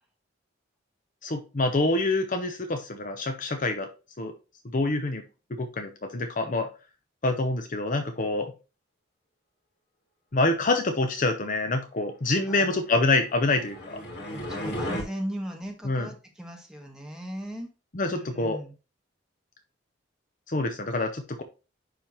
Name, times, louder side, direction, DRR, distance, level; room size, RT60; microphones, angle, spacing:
voice 1, 1.2-3.9 4.2-4.3 4.7-5.2 5.5-6.7 7.2-8.5 10.3-14.0 15.8-16.1 17.9-18.6 20.5-21.4, left 2 dB, 45° left, 6 dB, 0.8 m, -26 dB
voice 2, 12.5-12.8 14.3-17.7 18.1-18.7, equal, 5° right, 0 dB, 1.6 m, -37 dB
sound 1, 13.1-15.0, left 1 dB, 60° left, 2.3 m, -34 dB
10.0 x 3.5 x 3.0 m, 0.30 s
head